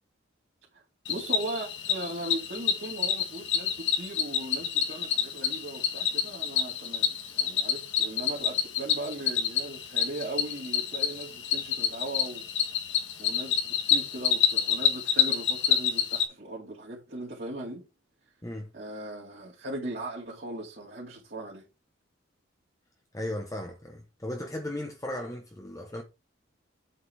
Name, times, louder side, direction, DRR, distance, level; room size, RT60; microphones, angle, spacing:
Cricket, 1.0-16.2, left 8 dB, 65° left, 1.6 m, -28 dB
voice 1, 1.1-12.4 13.2-17.9 18.7-21.6, right 1 dB, 50° right, 2.6 m, -38 dB
voice 2, 23.1-26.0, left 1 dB, 15° left, 1.1 m, -36 dB
8.2 x 4.9 x 4.8 m
head